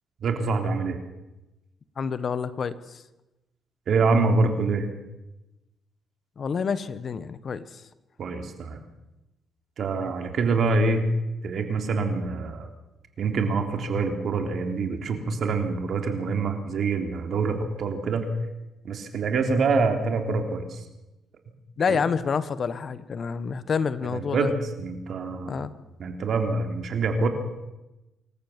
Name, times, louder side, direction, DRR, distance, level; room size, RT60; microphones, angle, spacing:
voice 1, 0.2-1.0 3.9-4.9 8.2-8.8 9.8-11.1 11.4-12.7 13.2-18.3 18.8-20.9 21.9-22.0 24.0-25.7 26.0-27.3, right 4 dB, 60° right, 5 dB, 3.4 m, -25 dB
voice 2, 2.0-3.0 6.4-7.6 10.0-10.1 21.8-24.5 25.5-25.7, left 6 dB, 50° left, 14 dB, 1.2 m, -28 dB
26.0 x 14.5 x 7.4 m, 0.99 s
cardioid pair, 90°, 0 cm